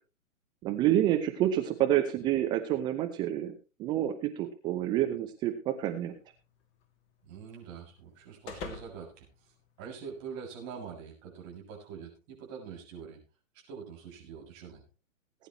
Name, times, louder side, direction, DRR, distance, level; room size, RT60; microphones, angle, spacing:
voice 1, 0.6-6.1, right 12 dB, 10° right, 5 dB, 0.6 m, -28 dB
sound 1, 5.9-10.3, left 4 dB, 25° left, 2.4 m, -49 dB
voice 2, 7.3-13.2 13.5-14.8, right 6 dB, 30° right, -2 dB, 6.9 m, -45 dB
19.5 x 10.0 x 3.2 m, 0.31 s
figure-of-eight pair, 125°, 40 cm